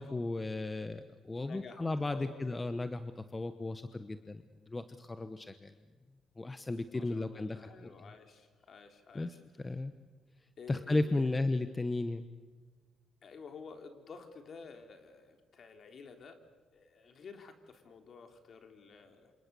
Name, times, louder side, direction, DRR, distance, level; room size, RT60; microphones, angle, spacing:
voice 1, 0.0-5.7 6.4-7.9 9.1-9.3 9.6-9.9 10.7-12.3, left 2 dB, 20° left, 10 dB, 1.1 m, -35 dB
voice 2, 1.4-2.4 2.6-2.8 6.9-9.8 10.6-11.4 13.2-16.4 16.7-19.3, left 5 dB, 55° left, 5 dB, 3.5 m, -51 dB
27.5 x 27.5 x 7.0 m, 1.5 s
cardioid pair, 90°, 0 cm